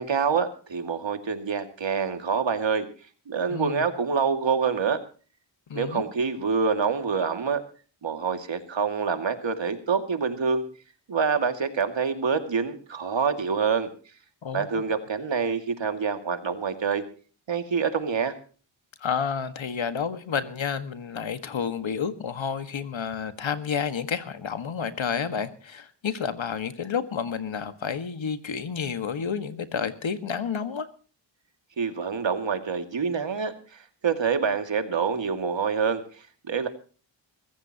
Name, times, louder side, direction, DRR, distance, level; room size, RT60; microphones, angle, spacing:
voice 1, 0.0-2.9 3.3-5.0 5.7-7.6 8.0-10.6 11.1-13.9 14.5-17.0 17.5-18.3 31.8-36.0 36.5-36.7, right 5 dB, 70° right, 8 dB, 2.4 m, -26 dB
voice 2, 3.5-3.8 5.7-6.0 14.4-14.7 19.0-30.9, left 6 dB, 75° left, 10 dB, 1.8 m, -30 dB
23.5 x 15.0 x 2.9 m, 0.39 s
wide cardioid pair, 75°, 46 cm